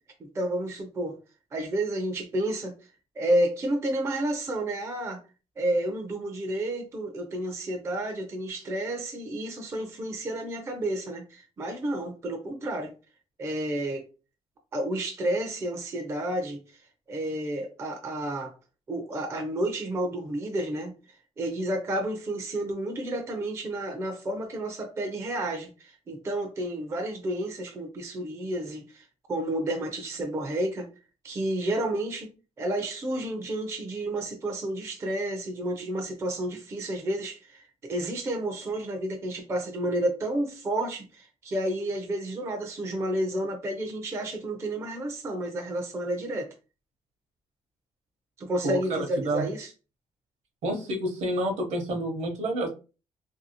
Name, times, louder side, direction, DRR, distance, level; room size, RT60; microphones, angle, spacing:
voice 1, 0.3-1.2 1.5-2.7 3.2-5.2 5.6-12.9 13.4-14.0 14.7-16.6 17.1-18.5 18.9-20.9 21.4-30.9 31.2-32.3 32.6-46.5 48.4-49.7, right 1 dB, 20° right, 3 dB, 0.4 m, -30 dB
voice 2, 48.6-49.5 50.6-52.7, right 1 dB, 60° right, 3 dB, 0.8 m, -29 dB
2.7 x 2.6 x 2.7 m, 0.33 s
cardioid pair, 180°, 13 cm